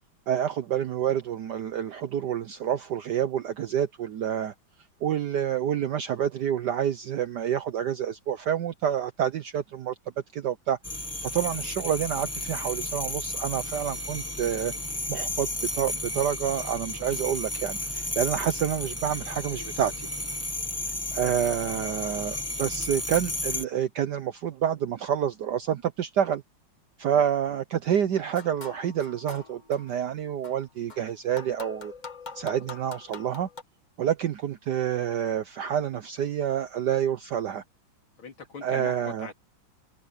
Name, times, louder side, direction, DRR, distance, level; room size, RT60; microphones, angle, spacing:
voice 1, 0.3-4.5 5.0-9.9 10.3-14.7 15.1-20.1 21.1-26.4 27.0-31.9 32.3-33.5 34.0-37.6 38.6-39.3, right 9 dB, 65° right, 1.3 m, -28 dB
sound 1, 10.8-23.6, left 2 dB, 10° left, 1.1 m, -33 dB
voice 2, 21.3-22.1 27.5-27.6 38.2-39.3, left 6 dB, 85° left, 4.0 m, -43 dB
sound 2, 28.3-30.0 30.4-33.6, left 4 dB, 25° left, 1.5 m, -44 dB
omnidirectional pair, 2.2 m